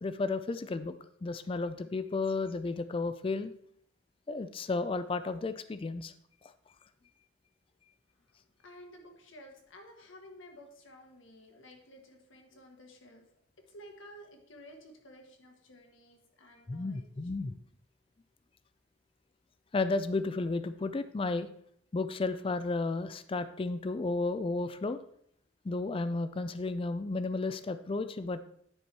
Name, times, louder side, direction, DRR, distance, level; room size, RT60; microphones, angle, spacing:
voice 1, 0.0-3.5 4.3-6.1 16.7-17.6 19.7-21.5 21.9-25.0 25.6-28.4, left 3 dB, 25° left, 12 dB, 0.3 m, -33 dB
voice 2, 8.6-13.2 13.7-17.3, equal, 70° left, 3 dB, 1.5 m, -53 dB
9.6 x 4.5 x 4.6 m, 0.68 s
head